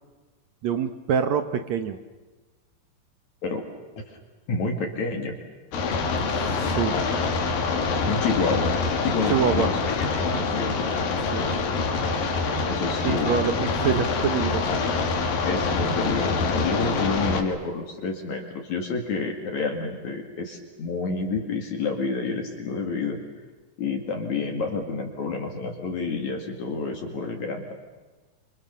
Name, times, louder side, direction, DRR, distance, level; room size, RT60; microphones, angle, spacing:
voice 1, 0.6-2.0 6.4-7.0 9.3-9.7 11.3-11.4 13.1-14.7, right 7 dB, 65° right, 8 dB, 2.1 m, -25 dB
voice 2, 4.5-5.3 8.1-8.8 9.0-10.7 12.6-13.4 15.4-23.2 23.8-27.7, left 4 dB, 60° left, 2 dB, 3.4 m, -29 dB
sound 1, 5.7-17.4, left 4 dB, 80° left, 4.1 m, -25 dB
27.0 x 27.0 x 6.9 m, 1.3 s
omnidirectional pair, 4.0 m